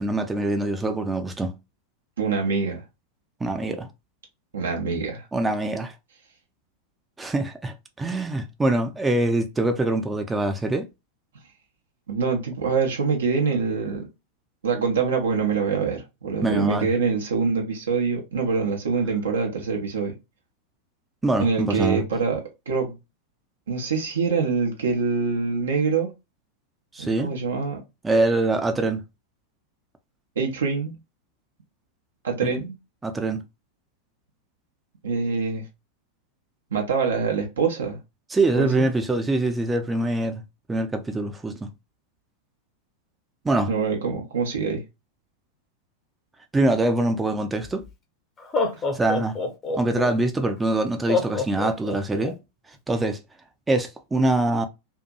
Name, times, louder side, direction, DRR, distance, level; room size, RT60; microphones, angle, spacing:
voice 1, 0.0-1.5 3.4-3.9 5.3-5.9 7.2-10.9 16.4-16.9 21.2-22.0 26.9-27.3 28.0-29.0 32.4-32.5 33.0-33.4 38.3-40.4 40.7-41.7 43.4-43.7 46.5-47.8 48.9-49.4 49.8-52.4 52.9-53.2 53.7-54.7, right 2 dB, 10° right, 0.5 m, -24 dB
voice 2, 2.2-2.8 4.5-5.3 12.1-14.1 14.6-20.1 21.4-22.4 22.7-23.0 23.7-26.1 27.0-27.8 30.4-30.9 32.2-32.7 35.0-35.6 36.7-38.0 38.5-38.8 43.7-44.8, right 5 dB, 65° right, 0.7 m, -25 dB
Laughter, 47.6-47.7 48.4-50.1 51.1-52.3, left 3 dB, 25° left, 0.7 m, -26 dB
2.7 x 2.5 x 2.2 m
figure-of-eight pair, 90°, 0 cm